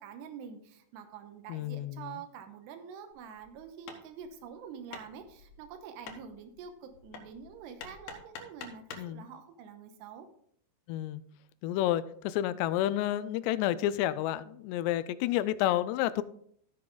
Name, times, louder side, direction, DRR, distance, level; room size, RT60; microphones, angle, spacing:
voice 1, 0.0-10.3, right 7 dB, 85° right, 7 dB, 3.1 m, -46 dB
voice 2, 1.5-2.1 9.0-9.3 10.9-11.2 11.6-16.2, left 13 dB, 85° left, 16 dB, 2.7 m, -30 dB
Hammer, 3.1-9.2, left 5 dB, 70° left, 2.9 m, -48 dB
14.5 x 6.0 x 3.8 m, 0.66 s
omnidirectional pair, 4.9 m